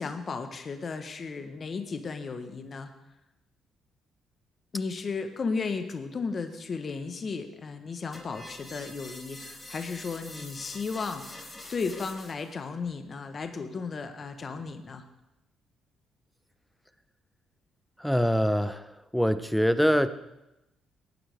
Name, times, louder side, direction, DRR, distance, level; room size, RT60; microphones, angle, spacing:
voice 1, 0.0-2.9 4.7-15.0, left 4 dB, 40° left, 7 dB, 1.2 m, -34 dB
sound 1, 8.1-12.5, left 1 dB, 25° left, 3.4 m, -45 dB
voice 2, 18.0-20.1, equal, ahead, 12 dB, 0.7 m, -24 dB
18.5 x 9.3 x 3.5 m, 0.93 s
cardioid pair, 90°, 0 cm